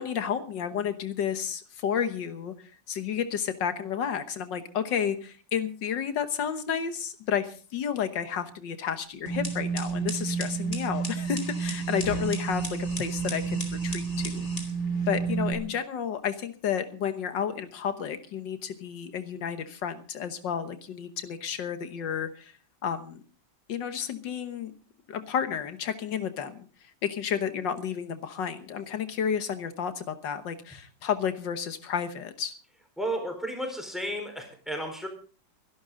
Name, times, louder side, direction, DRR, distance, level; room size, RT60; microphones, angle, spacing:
voice 1, 0.0-2.5 2.9-14.5 15.1-22.5 22.8-23.2 23.7-24.7 25.1-26.7 27.0-32.5, left 8 dB, 80° left, 9 dB, 1.8 m, -31 dB
sound 1, 9.3-15.5, right 4 dB, 40° left, 3.3 m, -30 dB
voice 2, 33.0-35.1, right 1 dB, ahead, 4 dB, 4.3 m, -33 dB
24.0 x 11.5 x 3.8 m, 0.38 s
omnidirectional pair, 1.9 m